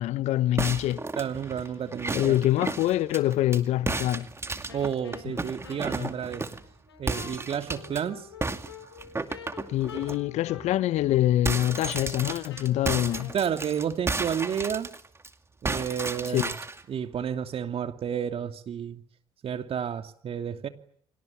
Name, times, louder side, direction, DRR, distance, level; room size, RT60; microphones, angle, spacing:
voice 1, 0.0-1.0 2.1-4.3 6.0-6.1 9.7-13.3 16.3-16.5, left 13 dB, 60° left, 1.1 m, -25 dB
sound 1, 0.6-3.6 3.9-6.7 7.1-8.0 8.4-10.2 10.6-10.7 11.0-15.3 15.6-16.8, right 3 dB, 20° right, 2.3 m, -33 dB
voice 2, 1.2-2.4 4.7-6.5 7.0-8.3 13.3-14.9 15.6-16.5 16.9-19.0 19.4-20.7, right 8 dB, 50° right, 2.6 m, -31 dB
Wind instrument woodwind instrument, 4.7-13.7, left 7 dB, 85° left, 5.7 m, -47 dB
29.5 x 25.0 x 7.3 m
hypercardioid pair, 55°, 13 cm